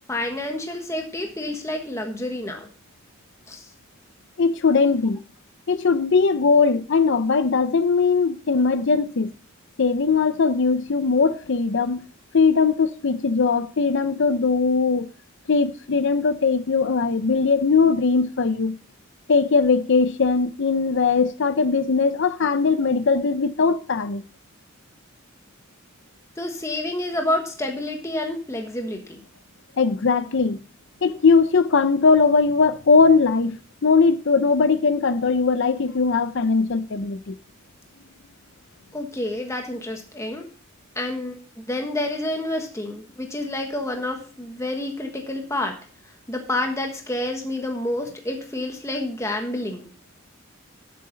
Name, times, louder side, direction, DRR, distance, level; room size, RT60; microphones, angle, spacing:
voice 1, 0.1-2.7 3.5-3.7 4.8-4.9 26.4-29.2 38.9-40.5 40.9-45.8 46.3-49.9, left 1 dB, 15° left, 1.3 m, -29 dB
voice 2, 4.4-5.2 5.7-9.3 9.8-12.1 12.3-15.1 15.5-18.8 19.3-24.2 29.8-30.6 31.0-33.6 33.8-37.4, left 4 dB, 65° left, 0.6 m, -20 dB
11.5 x 7.7 x 4.0 m
head